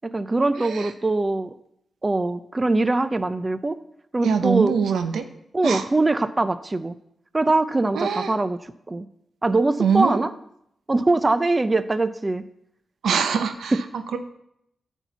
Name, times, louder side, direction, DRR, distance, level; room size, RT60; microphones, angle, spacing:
voice 1, 0.0-1.5 2.0-3.8 4.1-4.7 5.5-6.9 7.3-9.1 9.4-10.3 10.9-12.4 13.7-13.8, right 2 dB, 30° right, 13 dB, 0.5 m, -22 dB
voice 2, 0.6-0.9 4.2-5.3 5.6-5.9 7.9-8.3 9.8-10.2 13.0-13.8 14.1-14.2, right 6 dB, 85° right, 8 dB, 0.7 m, -23 dB
9.7 x 4.6 x 7.0 m, 0.76 s
supercardioid pair, 50°, 0 cm